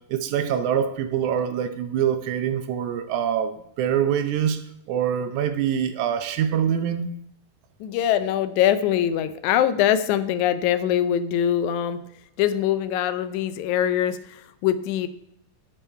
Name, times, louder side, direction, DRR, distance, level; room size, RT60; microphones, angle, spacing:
voice 1, 0.0-4.6 4.9-7.1, right 9 dB, 80° right, 8 dB, 2.0 m, -24 dB
voice 2, 7.8-12.0 12.4-15.1, left 10 dB, 80° left, 12 dB, 1.9 m, -23 dB
10.0 x 4.6 x 4.5 m, 0.74 s
omnidirectional pair, 3.5 m